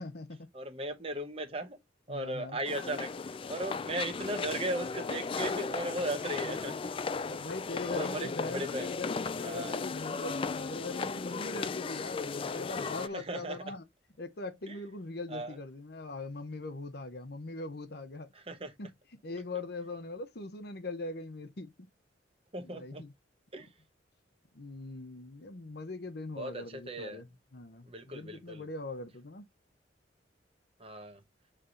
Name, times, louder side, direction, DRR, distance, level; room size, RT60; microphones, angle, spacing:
voice 1, 0.0-0.5 2.1-2.6 7.4-13.8 14.2-18.3 18.8-18.9 19.2-21.9 22.6-23.1 24.5-29.5, left 2 dB, 60° left, 0.9 m, -41 dB
voice 2, 0.5-1.8 2.1-6.9 7.8-8.9 9.4-9.8 13.1-13.7 14.7-14.8 15.3-15.6 18.3-18.7 22.5-23.0 23.5-23.7 26.4-27.2 27.9-28.6 30.8-31.2, right 1 dB, 30° right, 0.9 m, -37 dB
sound 1, 2.6-13.1, left 4 dB, 30° left, 0.3 m, -36 dB
7.3 x 3.3 x 3.8 m
head